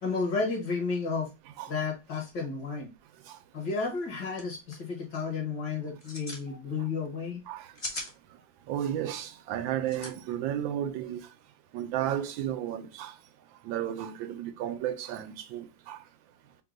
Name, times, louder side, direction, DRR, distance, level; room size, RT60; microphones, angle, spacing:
voice 1, 0.0-1.3 1.7-2.9 3.5-7.4, left 4 dB, 65° left, 2.0 m, -32 dB
sound 1, 4.0-4.1 4.3-4.4 4.7-5.0 5.9-6.4 7.5-8.1 9.8-10.1, left 2 dB, 30° left, 0.6 m, -38 dB
voice 2, 8.7-11.2 11.7-13.1 13.6-16.0, right 11 dB, 85° right, 1.3 m, -33 dB
4.6 x 2.2 x 3.8 m
omnidirectional pair, 2.1 m